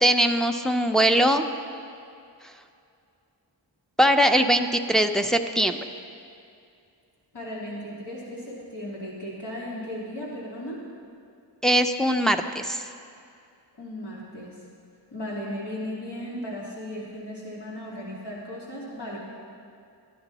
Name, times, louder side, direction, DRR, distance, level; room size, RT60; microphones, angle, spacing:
voice 1, 0.0-1.5 4.0-5.8 11.6-12.8, equal, ahead, 4 dB, 0.5 m, -21 dB
voice 2, 7.3-10.8 13.8-14.6 15.1-19.2, left 1 dB, 65° left, -6 dB, 2.5 m, -36 dB
13.5 x 10.5 x 4.1 m, 2.5 s
wide cardioid pair, 80°, 44 cm